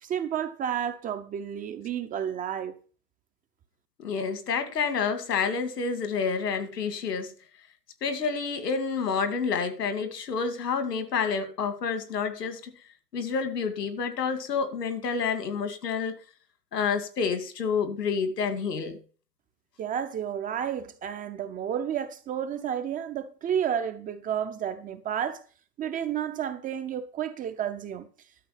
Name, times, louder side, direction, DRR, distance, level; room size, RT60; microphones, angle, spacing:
voice 1, 0.0-2.8 19.8-25.4 25.8-28.1, right 9 dB, 15° right, 0.7 m, -31 dB
voice 2, 4.0-7.3 8.0-12.7 13.1-16.2 16.7-19.0, left 5 dB, 80° left, 2.3 m, -29 dB
12.5 x 6.0 x 5.8 m
hypercardioid pair, 120°, 48 cm